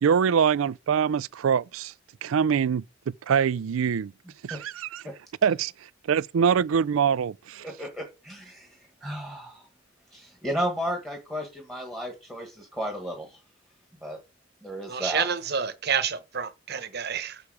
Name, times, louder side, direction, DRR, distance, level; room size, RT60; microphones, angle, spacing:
voice 1, 0.0-1.9 2.2-4.1 4.4-5.0 5.4-5.7 6.1-7.7, right 7 dB, 85° right, 0.4 m, -24 dB
voice 2, 7.6-8.7 9.0-9.7 10.1-13.4 14.0-14.2 14.6-15.2, equal, ahead, 1.5 m, -33 dB
voice 3, 14.9-17.4, right 7 dB, 55° right, 1.0 m, -29 dB
7.0 x 6.7 x 4.9 m
head